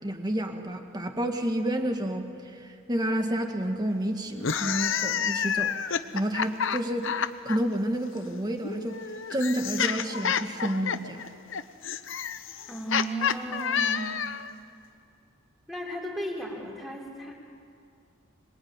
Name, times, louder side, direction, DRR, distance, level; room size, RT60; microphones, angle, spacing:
voice 1, 0.0-5.8 6.1-7.1 7.4-9.0 9.3-11.3, right 1 dB, 20° right, 4 dB, 2.0 m, -30 dB
sound 1, 4.3-7.6 8.6-14.5, left 7 dB, 60° left, 0.9 m, -29 dB
voice 2, 12.7-14.2 15.7-17.3, right 1 dB, ahead, -2 dB, 4.3 m, -35 dB
26.0 x 22.5 x 9.2 m, 2.4 s
head